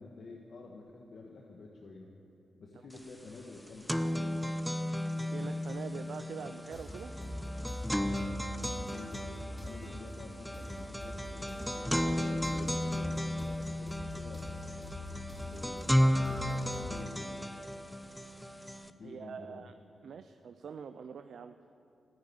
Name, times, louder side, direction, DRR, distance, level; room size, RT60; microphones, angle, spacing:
voice 1, 0.0-2.1 2.6-4.6 8.0-8.3 8.9-11.6 12.1-14.5 15.4-16.3 16.6-17.7 18.9-19.7, left 3 dB, 65° left, 0 dB, 1.4 m, -49 dB
sound 1, 3.0-3.1 3.4-18.9, equal, 5° left, 0.7 m, -34 dB
voice 2, 5.3-7.1 19.0-19.7 20.0-21.6, right 6 dB, 70° right, 9 dB, 0.5 m, -44 dB
sound 2, 6.7-17.1, left 1 dB, 30° left, 2.4 m, -43 dB
13.0 x 9.4 x 9.5 m, 2.6 s
supercardioid pair, 55°, 0 cm